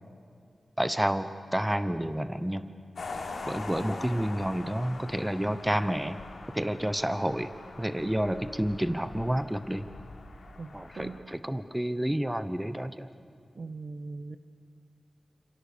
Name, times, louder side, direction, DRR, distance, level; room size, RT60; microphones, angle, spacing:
voice 1, 0.8-2.7 3.5-6.2 6.5-7.5 7.8-9.9 10.7-13.1, equal, 5° right, 11 dB, 0.9 m, -30 dB
sound 1, 3.0-11.2, left 3 dB, 70° left, 3.6 m, -43 dB
voice 2, 10.6-11.2 13.5-14.4, right 3 dB, 50° right, 12 dB, 1.0 m, -40 dB
30.0 x 27.5 x 6.9 m, 2.4 s
wide cardioid pair, 120°, 0 cm